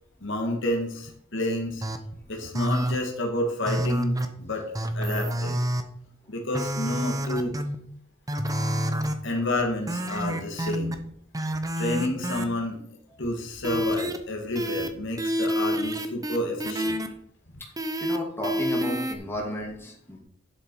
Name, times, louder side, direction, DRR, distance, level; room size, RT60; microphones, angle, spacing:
voice 1, 0.2-1.8 2.3-5.6 6.3-7.6 9.2-11.0 11.8-12.8 13.2-17.0, left 1 dB, 65° left, 1 dB, 2.2 m, -30 dB
sound 1, 1.8-2.0 2.6-3.0 3.7-4.3 4.8-5.8 6.5-7.8 8.3-9.1 9.9-11.0 11.3-12.5 13.6-14.2 14.6-14.9 15.2-17.1 17.8-18.2 18.4-19.2, equal, 20° right, 0.9 m, -28 dB
voice 2, 18.0-20.2, equal, 10° left, -1 dB, 2.5 m, -33 dB
11.5 x 6.8 x 4.7 m, 0.66 s
head